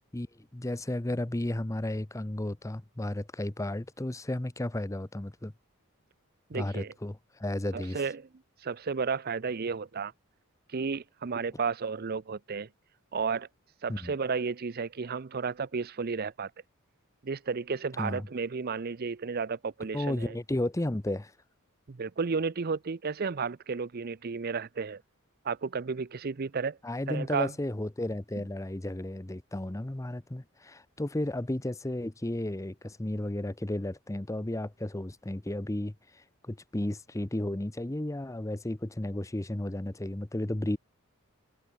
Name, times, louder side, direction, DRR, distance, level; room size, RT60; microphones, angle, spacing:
voice 1, 0.1-5.5 6.5-8.0 13.9-14.1 18.0-18.3 19.9-21.3 26.8-35.9 36.4-40.8, left 1 dB, 15° left, 0.7 m, -33 dB
voice 2, 6.5-6.9 7.7-8.3 8.6-10.1 10.7-12.7 13.1-13.5 13.8-16.5 17.2-20.3 21.9-25.0 25.4-26.8 27.1-27.5, right 5 dB, 45° right, 0.5 m, -32 dB
head